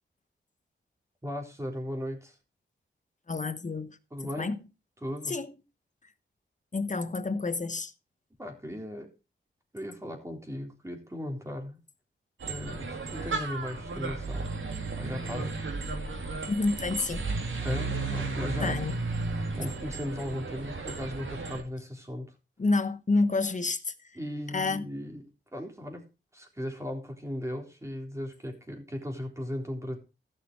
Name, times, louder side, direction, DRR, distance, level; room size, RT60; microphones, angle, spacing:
voice 1, 1.2-2.4 4.1-4.5 5.0-5.3 8.4-9.1 9.7-11.8 12.5-14.5 15.0-15.7 17.6-18.8 19.6-22.3 24.2-25.2 25.5-30.0, left 1 dB, 15° right, 3.7 m, -37 dB
voice 2, 3.3-4.0 4.4-4.6 5.3-5.5 6.7-7.9 16.5-17.2 18.6-19.0 22.6-23.9 24.5-24.9, left 3 dB, 35° left, 1.2 m, -28 dB
sound 1, 12.4-21.6, right 3 dB, 70° right, 2.8 m, -34 dB
15.5 x 6.4 x 4.6 m
wide cardioid pair, 90°, 21 cm